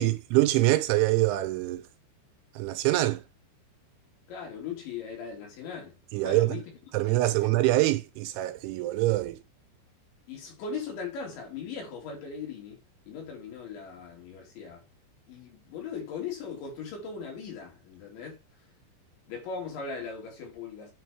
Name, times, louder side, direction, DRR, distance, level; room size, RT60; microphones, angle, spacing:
voice 1, 0.0-1.8 2.6-3.2 6.1-6.5 6.9-9.4, right 17 dB, 80° right, 2.9 m, -24 dB
voice 2, 4.3-6.0 6.2-6.7 7.0-7.5 10.3-12.8 13.1-14.9 15.3-18.4 19.3-20.9, left 5 dB, 70° left, 5.1 m, -39 dB
9.9 x 4.3 x 3.0 m
omnidirectional pair, 5.6 m